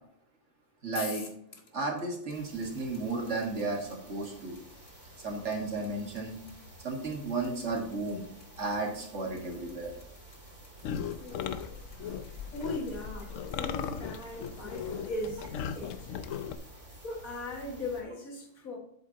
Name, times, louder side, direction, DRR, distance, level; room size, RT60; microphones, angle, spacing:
voice 1, 0.8-1.2 1.7-4.6 5.2-6.4 6.8-8.3 8.6-9.9 11.6-11.7, right 3 dB, 55° right, 0 dB, 2.0 m, -33 dB
sound 1, 0.9-15.0, left 5 dB, 50° left, 1.3 m, -49 dB
sound 2, 2.3-18.0, right 1 dB, 25° right, 2.6 m, -52 dB
sound 3, 10.8-16.6, left 7 dB, 70° left, 0.9 m, -37 dB
voice 2, 11.2-11.5 12.5-15.5 15.7-16.3 17.0-18.8, left 2 dB, 90° left, 1 dB, 2.2 m, -39 dB
7.9 x 7.7 x 2.8 m, 0.71 s
omnidirectional pair, 1.4 m